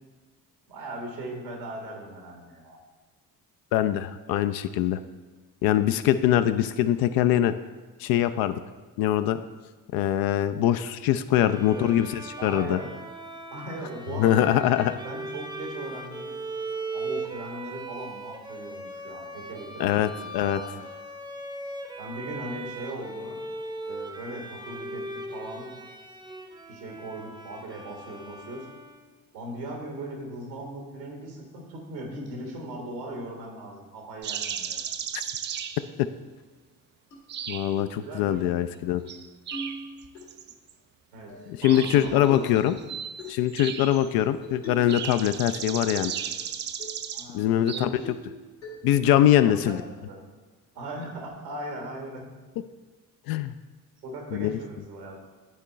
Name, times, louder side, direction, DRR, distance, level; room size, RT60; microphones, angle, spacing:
voice 1, 0.7-2.8 11.4-11.9 12.4-12.9 13.5-14.5 15.0-16.3 16.9-20.8 22.0-23.4 23.9-25.7 26.7-28.7 29.3-34.9 38.0-38.7 41.1-42.8 47.1-48.1 49.3-50.2 50.7-52.2 54.0-55.2, right 1 dB, 80° right, 1 dB, 1.5 m, -39 dB
voice 2, 3.7-5.0 5.6-7.5 8.0-8.6 9.0-9.4 9.9-12.8 14.2-14.9 19.8-20.6 35.1-35.2 37.5-39.0 41.5-42.8 43.3-46.1 47.3-47.9 48.8-49.8 53.3-53.5 54.3-54.6, left 11 dB, 50° left, 11 dB, 0.5 m, -23 dB
Bowed string instrument, 11.4-29.2, right 2 dB, 10° right, 0.8 m, -39 dB
sound 1, 34.2-35.9 37.3-37.9 39.1-40.7 41.6-44.2 44.9-47.3 47.7-47.8, right 8 dB, 25° right, 0.3 m, -35 dB
sound 2, 37.1-37.2 37.8-38.0 38.3-38.4 38.8-39.1 39.5-40.2 41.3-41.9 42.3-42.6 43.2-43.4 44.4-45.0 45.3-46.0 46.4-46.5 46.8-47.0 47.4-47.5 48.0-48.3 48.6-49.0, equal, 85° left, 2.0 m, -42 dB
10.0 x 4.4 x 4.2 m, 1.4 s
figure-of-eight pair, 45°, 49 cm